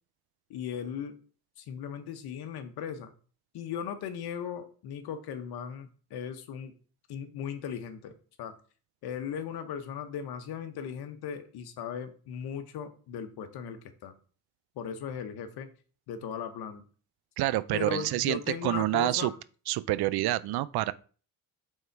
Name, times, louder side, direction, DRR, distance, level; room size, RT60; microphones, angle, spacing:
voice 1, 0.5-1.1 1.6-3.1 3.5-6.7 7.1-8.5 9.0-14.1 14.8-15.7 16.1-16.8 17.7-19.3, left 7 dB, 80° left, 1.0 m, -37 dB
voice 2, 17.4-19.3 19.7-20.9, right 16 dB, 75° right, 0.5 m, -28 dB
5.4 x 3.8 x 4.6 m
cardioid pair, 90°, 38 cm